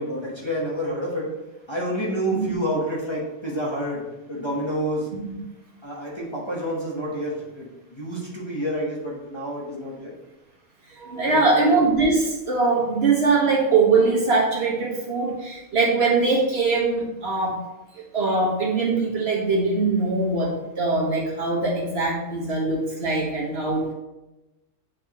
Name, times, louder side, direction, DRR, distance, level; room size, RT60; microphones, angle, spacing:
voice 1, 0.0-1.3 1.7-5.1 5.8-10.1 11.3-11.8, equal, 25° left, -5 dB, 1.3 m, -29 dB
voice 2, 10.9-17.6 17.9-23.9, right 3 dB, 55° right, -4 dB, 1.7 m, -22 dB
8.4 x 4.7 x 3.0 m, 0.99 s
omnidirectional pair, 1.3 m